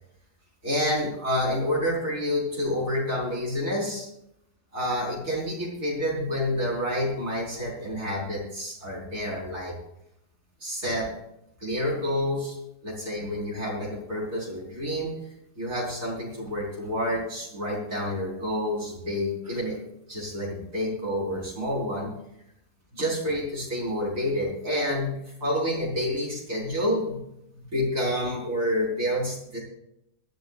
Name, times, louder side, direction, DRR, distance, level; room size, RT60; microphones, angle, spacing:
voice 1, 0.6-4.1 4.7-9.7 10.6-11.1 11.6-12.6 12.8-15.1 15.6-19.8 20.1-22.1 22.9-25.1 25.4-27.2 27.6-29.6, left 1 dB, 55° right, -4 dB, 5.3 m, -28 dB
22.5 x 13.0 x 2.5 m, 0.80 s
omnidirectional pair, 1.7 m